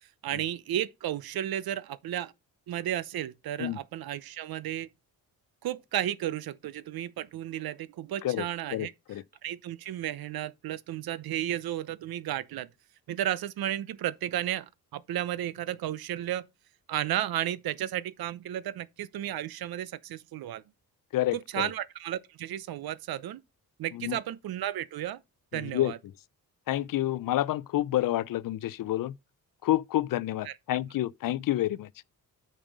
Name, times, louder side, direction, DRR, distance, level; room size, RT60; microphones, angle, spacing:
voice 1, 0.2-2.3 2.7-4.9 5.6-8.9 9.4-12.7 13.1-16.4 16.9-20.6 21.3-23.4 23.8-25.2 25.5-26.0 30.4-30.8, right 12 dB, 75° right, 0.8 m, -33 dB
voice 2, 8.2-9.2 21.1-21.7 23.9-24.2 25.5-25.9 26.7-29.1 29.6-31.9, left 14 dB, 65° left, 0.5 m, -29 dB
8.9 x 5.3 x 5.3 m
cardioid pair, 120°, 36 cm